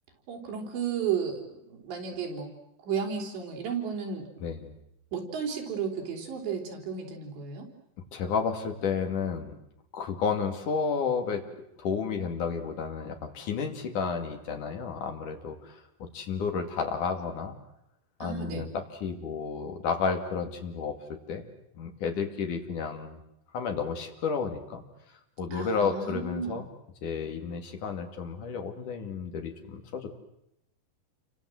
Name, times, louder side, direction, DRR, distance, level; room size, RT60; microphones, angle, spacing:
voice 1, 0.3-2.5 2.8-4.3 5.1-7.7 18.2-18.7 25.5-26.6, right 6 dB, 85° right, 2 dB, 5.9 m, -33 dB
voice 2, 4.4-4.7 8.1-9.5 9.9-11.4 11.8-17.6 18.2-21.0 21.3-21.5 21.8-23.2 23.5-24.8 25.4-26.7 27.0-30.1, left 5 dB, 55° left, 5 dB, 3.6 m, -31 dB
29.0 x 24.5 x 7.8 m, 0.80 s
omnidirectional pair, 4.9 m